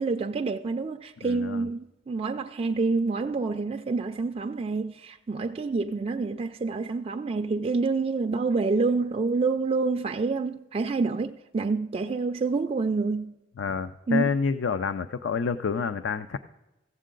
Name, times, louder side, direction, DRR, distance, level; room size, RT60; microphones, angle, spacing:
voice 1, 0.0-13.3 14.1-14.3, right 4 dB, 30° right, 0.3 m, -27 dB
voice 2, 1.2-1.7 13.6-16.4, left 5 dB, 65° left, 0.4 m, -28 dB
15.5 x 7.4 x 3.8 m
head